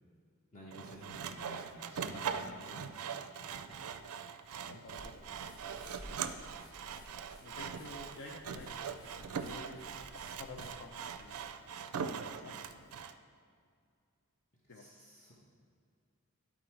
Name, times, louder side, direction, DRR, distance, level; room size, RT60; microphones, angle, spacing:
voice 1, 0.5-2.8 3.5-3.9 14.7-15.3, left 1 dB, 35° left, -5 dB, 1.1 m, -52 dB
Sawing, 0.7-13.2, right 7 dB, 75° right, 0.4 m, -42 dB
voice 2, 4.7-5.3 6.1-6.4 7.4-8.7 9.0-11.6 12.3-12.7 14.7-14.9, left 2 dB, 60° left, 1 dB, 0.6 m, -51 dB
sound 1, 5.0-11.5, equal, 20° left, 1.8 m, -55 dB
11.5 x 4.3 x 4.6 m, 2.3 s
head